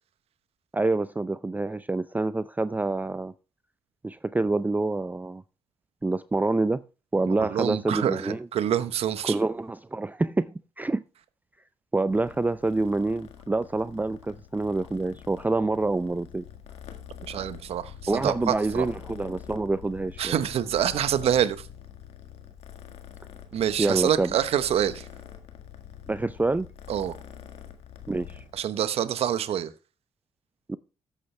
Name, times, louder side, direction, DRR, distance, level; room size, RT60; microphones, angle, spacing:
voice 1, 0.7-3.3 4.0-5.4 6.0-6.8 7.1-8.5 9.2-11.0 11.9-16.5 18.1-20.3 23.8-24.3 26.1-26.7 28.1-28.4 30.7-30.8, right 2 dB, 15° right, 0.5 m, -27 dB
voice 2, 7.3-9.3 17.2-18.9 20.2-21.7 23.5-25.1 26.9-27.1 28.5-29.7, right 10 dB, 70° right, 1.0 m, -26 dB
Purr, 12.1-28.6, left 9 dB, 80° left, 1.6 m, -45 dB
14.0 x 8.4 x 3.3 m
supercardioid pair, 55°, 11 cm